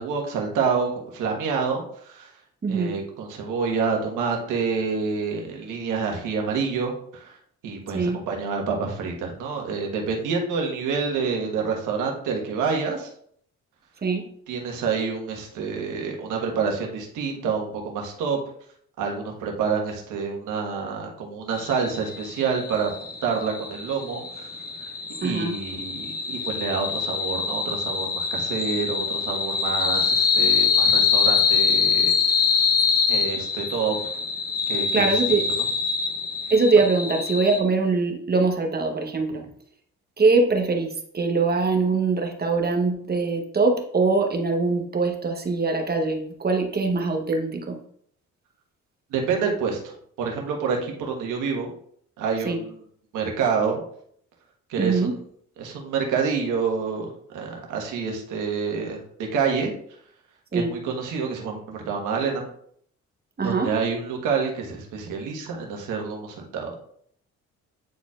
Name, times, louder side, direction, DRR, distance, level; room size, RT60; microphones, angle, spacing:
voice 1, 0.0-2.3 2.7-7.4 7.6-13.1 14.5-18.4 19.0-22.9 23.2-24.5 24.8-24.9 25.2-32.4 33.1-34.1 34.7-35.4 49.1-51.7 52.2-52.7 53.1-53.8 54.7-55.2 55.6-59.0 59.3-59.7 60.5-62.4 63.4-66.8, right 5 dB, 90° right, 1 dB, 1.4 m, -28 dB
voice 2, 2.6-2.9 7.9-8.2 14.0-14.2 25.2-25.5 34.9-35.4 36.5-39.4 40.2-47.8 52.4-52.6 54.8-55.1 60.5-60.7 63.4-63.7, right 3 dB, 30° right, 3 dB, 1.0 m, -22 dB
sound 1, 21.5-37.6, left 6 dB, 30° left, 0.9 m, -24 dB
9.2 x 4.3 x 2.4 m, 0.63 s
cardioid pair, 90°, 30 cm